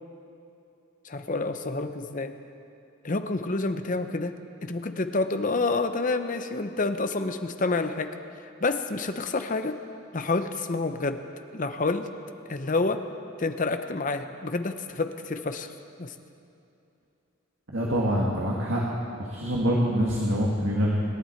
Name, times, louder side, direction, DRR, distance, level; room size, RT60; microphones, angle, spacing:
voice 1, 1.0-2.3 3.0-8.1 8.6-9.8 10.1-11.2 11.5-12.1 12.5-13.0 13.4-15.7 16.0-16.1, left 3 dB, 40° left, 8 dB, 0.7 m, -28 dB
voice 2, 17.7-18.8 19.2-21.0, equal, 65° right, -4 dB, 1.8 m, -25 dB
25.5 x 11.0 x 4.5 m, 2.7 s
head